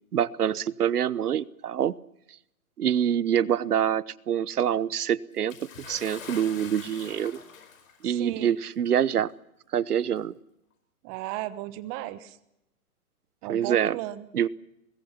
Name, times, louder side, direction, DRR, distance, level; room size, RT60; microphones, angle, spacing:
voice 1, 0.1-1.9 2.8-7.4 8.0-9.3 9.7-10.3 13.5-14.0 14.3-14.5, right 9 dB, 85° right, 20 dB, 1.1 m, -26 dB
Bathtub (filling or washing) / Splash splatter, 5.5-8.1 9.0-9.1 10.1-10.2, left 7 dB, 60° left, 5.3 m, -44 dB
voice 2, 8.0-8.5 11.0-12.4 13.4-14.3, right 15 dB, 25° right, 15 dB, 1.1 m, -35 dB
24.0 x 21.0 x 5.8 m, 0.81 s
hypercardioid pair, 145°, 44 cm